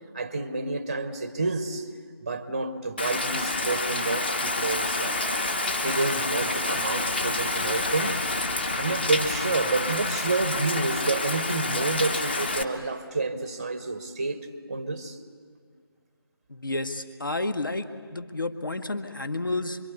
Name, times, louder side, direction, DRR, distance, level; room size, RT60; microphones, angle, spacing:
voice 1, 0.1-1.9 2.2-5.6 5.8-8.2 8.8-15.2, right 3 dB, 15° right, 0.8 m, -29 dB
Rain, 3.0-12.6, left 2 dB, 25° left, 1.0 m, -28 dB
voice 2, 16.5-19.8, left 2 dB, 55° left, 1.8 m, -31 dB
26.5 x 24.0 x 8.2 m
figure-of-eight pair, 165°, 13 cm